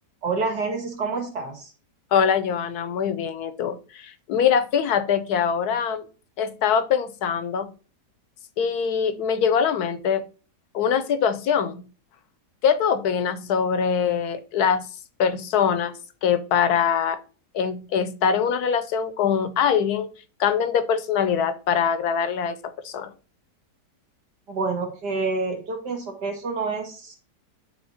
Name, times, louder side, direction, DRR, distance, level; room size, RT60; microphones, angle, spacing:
voice 1, 0.2-1.7 24.5-27.2, right 4 dB, 80° right, 3 dB, 2.4 m, -28 dB
voice 2, 2.1-6.1 6.4-7.7 8.6-10.2 10.7-11.9 12.6-14.9 15.2-17.2 17.5-20.1 20.4-23.1, left 7 dB, 75° left, 13 dB, 1.2 m, -23 dB
9.9 x 3.4 x 4.2 m, 0.37 s
omnidirectional pair, 1.8 m